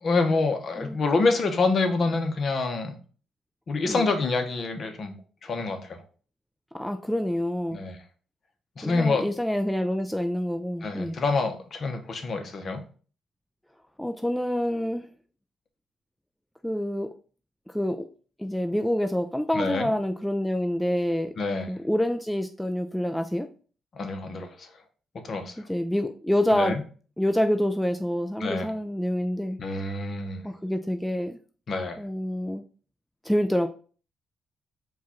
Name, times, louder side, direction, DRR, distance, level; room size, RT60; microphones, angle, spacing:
voice 1, 0.0-3.0 3.7-5.1 5.4-6.0 7.7-8.0 8.8-9.3 10.8-12.8 19.5-19.9 21.4-21.7 23.9-24.7 25.2-25.6 26.5-26.8 28.4-28.7 29.6-30.4 31.7-32.0, left 3 dB, 45° left, 6 dB, 0.9 m, -26 dB
voice 2, 6.7-7.8 8.8-11.2 14.0-15.1 16.6-17.1 17.7-18.1 18.4-21.3 21.7-23.5 25.7-26.7 27.2-29.6 30.4-31.4 32.0-32.6 33.2-33.7, equal, 5° left, 6 dB, 0.3 m, -27 dB
4.6 x 2.4 x 4.2 m, 0.40 s
cardioid pair, 90°, 0 cm